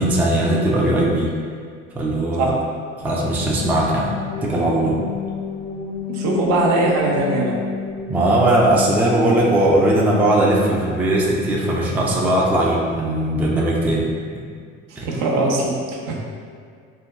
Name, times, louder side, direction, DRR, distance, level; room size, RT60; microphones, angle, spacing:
voice 1, 0.0-1.3 2.0-2.5 3.0-5.0 8.1-14.1 14.3-14.4 15.0-15.1, right 1 dB, 5° right, -3 dB, 0.3 m, -19 dB
sound 1, 3.0-10.8, left 6 dB, 65° left, 0.5 m, -31 dB
voice 2, 6.1-7.6 14.9-16.2, right 2 dB, 65° right, -1 dB, 0.6 m, -21 dB
3.7 x 2.1 x 2.2 m, 2.1 s
supercardioid pair, 90°, 30 cm